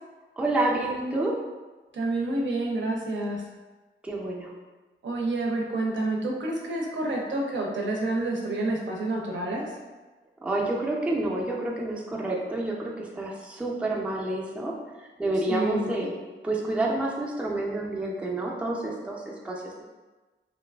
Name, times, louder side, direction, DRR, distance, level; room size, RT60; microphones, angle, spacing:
voice 1, 0.4-1.3 4.0-4.5 10.4-14.7 15.2-16.2 16.4-19.8, right 2 dB, 5° right, -2 dB, 0.4 m, -29 dB
voice 2, 1.9-3.4 5.0-9.7 15.5-15.9, right 2 dB, 70° right, -1 dB, 0.5 m, -28 dB
2.9 x 2.3 x 2.2 m, 1.2 s
wide cardioid pair, 85°, 20 cm